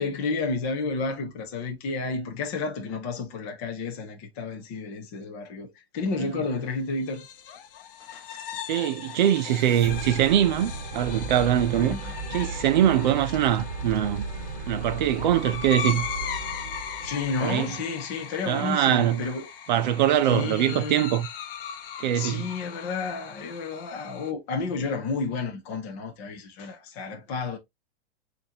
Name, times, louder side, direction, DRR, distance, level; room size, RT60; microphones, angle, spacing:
voice 1, 0.0-7.3 8.0-8.4 11.8-12.1 17.0-19.5 20.3-21.0 22.1-27.6, left 4 dB, 15° left, 0.3 m, -31 dB
sound 1, 7.0-24.3, left 8 dB, 60° left, 0.8 m, -38 dB
voice 2, 8.7-12.0 12.3-14.2 14.7-16.1 17.4-17.7 18.5-19.2 19.7-21.3 22.0-22.4, right 11 dB, 50° right, 0.5 m, -23 dB
sound 2, 8.8-18.0, right 3 dB, 20° right, 1.3 m, -36 dB
6.7 x 2.6 x 2.7 m
hypercardioid pair, 155°, 31 cm